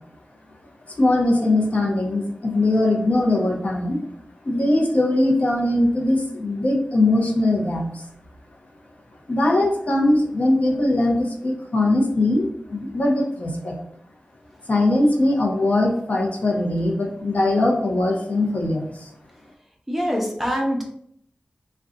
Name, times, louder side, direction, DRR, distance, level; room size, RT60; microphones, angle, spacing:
voice 1, 1.0-4.0 4.5-7.9 9.3-13.7 14.7-18.9, left 2 dB, 55° left, 0 dB, 0.6 m, -21 dB
voice 2, 19.9-20.8, equal, 5° right, -1 dB, 0.6 m, -24 dB
2.5 x 2.2 x 3.7 m, 0.66 s
wide cardioid pair, 105°, 3 cm